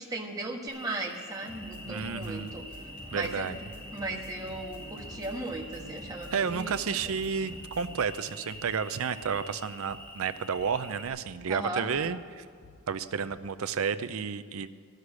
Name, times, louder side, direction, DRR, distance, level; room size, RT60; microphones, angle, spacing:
voice 1, 0.0-2.6 3.1-3.5 3.9-7.1 11.5-11.9, right 2 dB, 15° right, -1 dB, 1.5 m, -37 dB
Cricket, 0.7-11.1, left 1 dB, 10° left, 1.7 m, -46 dB
sound 1, 1.4-7.9, equal, 40° left, 4.1 m, -47 dB
voice 2, 1.8-2.5 3.1-3.5 6.3-12.4 12.9-14.7, right 6 dB, 70° right, 12 dB, 0.5 m, -31 dB
sound 2, 3.5-13.4, left 3 dB, 60° left, 2.0 m, -57 dB
13.0 x 6.6 x 9.6 m, 2.1 s
head